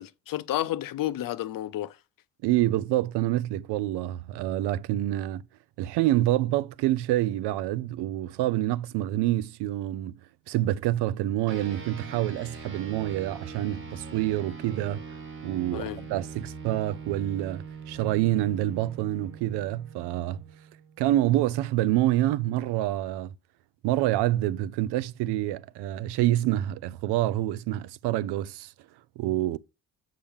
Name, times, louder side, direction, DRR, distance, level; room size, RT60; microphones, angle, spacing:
voice 1, 0.0-1.9 15.7-16.1, left 13 dB, 55° left, 0.6 m, -31 dB
voice 2, 2.4-5.4 5.8-10.2 10.5-15.0 15.4-20.4 21.0-23.3 23.8-28.7 29.2-29.6, right 14 dB, 70° right, 0.6 m, -27 dB
sound 1, 11.5-21.2, right 5 dB, 30° right, 1.5 m, -42 dB
7.0 x 5.6 x 3.5 m
supercardioid pair, 60°, 41 cm